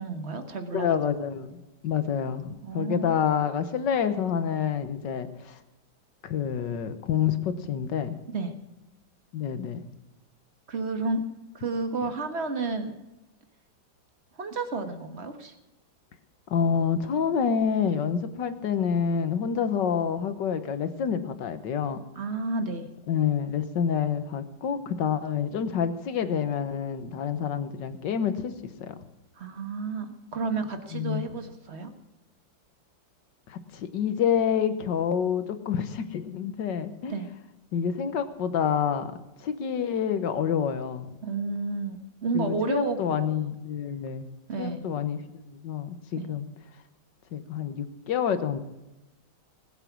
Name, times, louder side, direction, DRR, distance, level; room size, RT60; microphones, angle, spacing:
voice 1, 0.0-1.0 2.6-3.1 8.3-8.5 10.7-11.2 11.5-12.9 14.4-15.5 22.1-22.9 29.4-31.9 37.1-37.3 41.2-43.3 44.5-44.9 46.2-46.3, right 3 dB, 35° right, 7 dB, 1.6 m, -31 dB
voice 2, 0.7-5.6 6.2-8.2 9.3-9.8 16.5-22.0 23.1-28.5 28.8-29.0 30.9-31.3 33.5-37.2 37.7-39.1 39.4-41.1 42.3-44.3 44.6-45.2 45.5-46.5 47.3-48.6, left 7 dB, 70° left, 11 dB, 1.7 m, -28 dB
20.0 x 8.3 x 6.1 m, 0.99 s
omnidirectional pair, 2.0 m